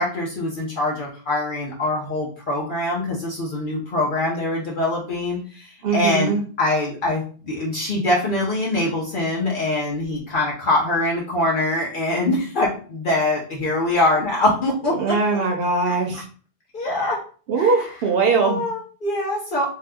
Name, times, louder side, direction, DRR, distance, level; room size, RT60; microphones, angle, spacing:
voice 1, 0.0-14.9 15.8-16.2 16.7-17.2 17.6-17.7 18.4-19.6, left 2 dB, 60° left, -3 dB, 0.8 m, -23 dB
voice 2, 5.8-6.4 15.0-16.2 17.5-18.6, right 4 dB, 70° right, 2 dB, 0.8 m, -21 dB
2.7 x 2.2 x 3.4 m, 0.41 s
omnidirectional pair, 1.1 m